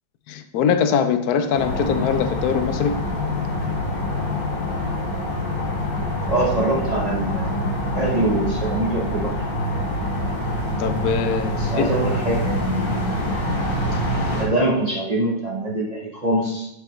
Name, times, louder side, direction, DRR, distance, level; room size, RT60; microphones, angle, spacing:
voice 1, 0.3-3.0 10.8-11.9, left 7 dB, 80° left, 9 dB, 0.8 m, -22 dB
sound 1, 1.5-14.5, left 1 dB, 30° left, 1.4 m, -25 dB
voice 2, 6.3-7.5 7.9-9.3 11.5-13.1 14.3-16.7, right 1 dB, 80° right, -2 dB, 0.3 m, -24 dB
10.5 x 4.9 x 3.2 m, 0.82 s
omnidirectional pair, 2.3 m